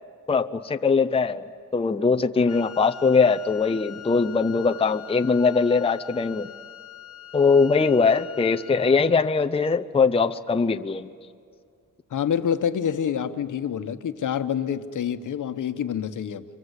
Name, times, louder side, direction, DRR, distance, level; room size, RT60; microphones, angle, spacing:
voice 1, 0.3-1.4 1.7-6.5 7.3-11.1, left 4 dB, 20° left, 7 dB, 0.6 m, -21 dB
Wind instrument woodwind instrument, 2.5-9.1, left 10 dB, 45° left, 1.3 m, -43 dB
voice 2, 12.1-16.5, left 8 dB, 65° left, 9 dB, 1.2 m, -27 dB
29.5 x 24.5 x 8.2 m, 2.3 s
wide cardioid pair, 120°, 32 cm